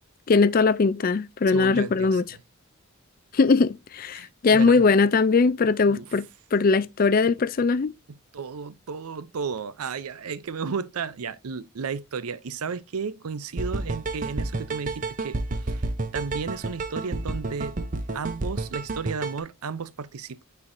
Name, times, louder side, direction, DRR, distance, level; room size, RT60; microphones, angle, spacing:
voice 1, 0.3-2.2 3.3-6.2 6.5-7.9, left 4 dB, 40° left, 0.4 m, -20 dB
voice 2, 1.5-2.4 4.1-4.8 5.9-6.2 8.1-17.8 18.1-20.4, right 5 dB, 85° right, 0.5 m, -34 dB
sound 1, 13.6-19.4, right 2 dB, 35° right, 0.7 m, -30 dB
8.6 x 4.5 x 2.6 m
head